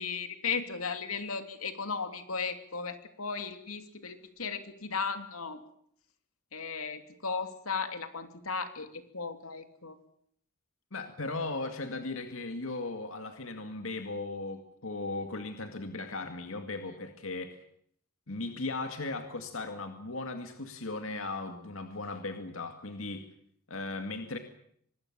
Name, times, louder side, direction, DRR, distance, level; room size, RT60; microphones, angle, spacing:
voice 1, 0.0-5.6 6.5-10.0, left 5 dB, 85° left, 8 dB, 2.9 m, -36 dB
voice 2, 10.9-17.6 18.3-23.3 23.7-24.4, left 3 dB, 65° left, 6 dB, 2.2 m, -37 dB
25.0 x 21.0 x 7.4 m, 0.67 s
head